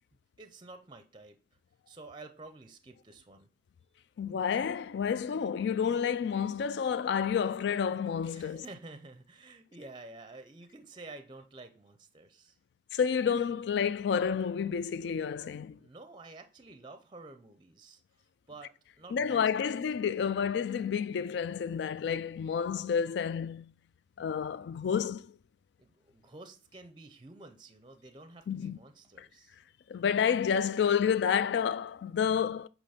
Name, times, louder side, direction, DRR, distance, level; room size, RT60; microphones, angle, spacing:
voice 1, 0.4-1.4 1.9-3.5 8.3-12.6 15.7-18.0 18.5-19.7 25.8-29.6, right 2 dB, 25° right, 0.5 m, -50 dB
voice 2, 4.2-8.6 12.9-15.8 19.1-23.7 24.2-25.3 28.5-28.8 29.2-29.3 29.9-32.7, left 7 dB, 65° left, 0.3 m, -30 dB
8.5 x 3.0 x 5.6 m
head